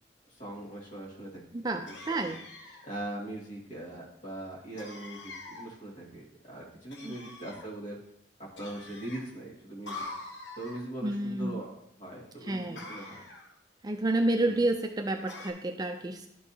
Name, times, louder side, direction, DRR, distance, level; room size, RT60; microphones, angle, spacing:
voice 1, 0.3-1.4 1.7-2.3 2.8-8.0 8.6-10.0 10.6-11.7 12.0-13.2 14.4-14.6, right 1 dB, 45° left, -3 dB, 2.1 m, -41 dB
voice 2, 1.5-2.4 7.0-7.2 11.0-11.6 12.5-12.8 13.8-16.3, right 2 dB, 20° right, 5 dB, 0.4 m, -30 dB
sound 1, 1.9-2.9 4.8-5.7 6.9-7.7 8.6-9.2 9.9-10.8 12.8-13.5 15.3-15.5, left 2 dB, 80° left, 1.1 m, -44 dB
11.5 x 4.6 x 2.8 m, 0.73 s
head